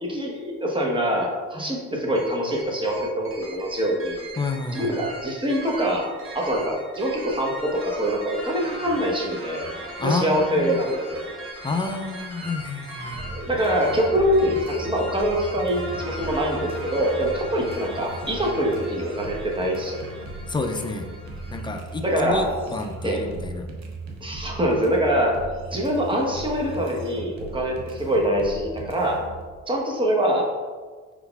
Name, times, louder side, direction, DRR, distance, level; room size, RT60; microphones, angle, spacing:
voice 1, 0.0-4.2 4.7-6.1 6.3-9.7 10.0-11.3 13.3-20.1 22.0-22.5 23.0-23.2 24.2-25.4 25.7-29.2 29.7-30.5, equal, 15° right, -1 dB, 1.0 m, -24 dB
sound 1, 2.2-21.6, right 1 dB, 45° right, 1.1 m, -39 dB
voice 2, 4.4-4.9 10.0-10.8 11.6-13.2 20.5-21.1 21.5-23.7, left 3 dB, 15° left, 5 dB, 0.4 m, -29 dB
sound 2, 13.1-29.4, right 2 dB, 65° right, 0.8 m, -38 dB
5.1 x 3.9 x 2.3 m, 1.5 s
cardioid pair, 90°, 30 cm